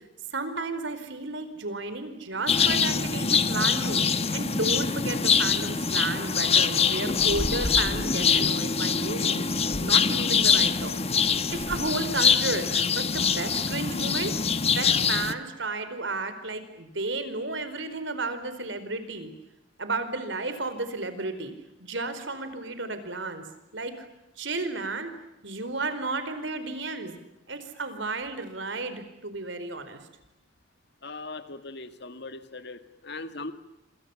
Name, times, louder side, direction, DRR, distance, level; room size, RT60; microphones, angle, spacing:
voice 1, 0.3-4.0 4.3-9.5 9.8-11.0 11.5-14.3 14.7-19.3 19.8-21.5 21.8-23.4 23.7-24.1 24.4-25.1 25.4-27.2 27.5-30.0, right 3 dB, 70° right, 10 dB, 4.7 m, -33 dB
sound 1, 2.3-4.3 5.3-7.2 11.1-13.3, right 2 dB, 35° right, 3.2 m, -48 dB
sound 2, 2.5-15.3, left 6 dB, 35° left, 1.2 m, -24 dB
voice 2, 31.0-33.5, left 3 dB, 60° left, 10 dB, 2.1 m, -39 dB
27.5 x 27.5 x 7.2 m, 0.90 s
head